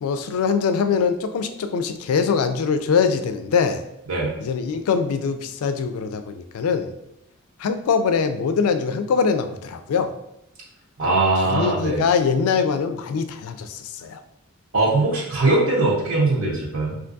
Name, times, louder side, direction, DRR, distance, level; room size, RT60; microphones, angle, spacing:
voice 1, 0.0-3.9 4.4-6.9 7.6-10.1 11.4-14.2, left 5 dB, 90° left, 9 dB, 0.3 m, -23 dB
voice 2, 11.0-12.0 14.7-17.0, right 2 dB, 75° right, -4 dB, 0.9 m, -21 dB
3.4 x 2.5 x 2.6 m, 0.82 s
head